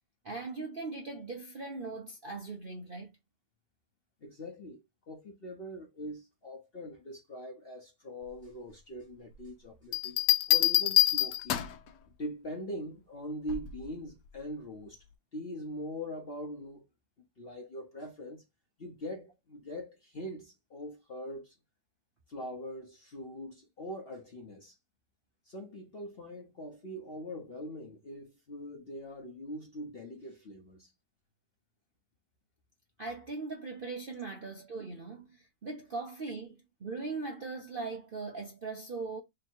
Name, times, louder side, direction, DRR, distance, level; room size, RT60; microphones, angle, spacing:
voice 1, 0.2-3.1 33.0-39.2, right 3 dB, 50° right, 0.6 m, -40 dB
voice 2, 4.2-10.2 10.5-11.6 12.2-15.0 15.3-16.9 17.4-18.4 18.8-21.5 22.3-24.7 25.5-30.9, equal, 45° left, 0.8 m, -42 dB
sound 1, 9.9-11.9 13.5-13.8, left 12 dB, 80° left, 1.2 m, -26 dB
3.2 x 2.7 x 4.3 m
omnidirectional pair, 1.8 m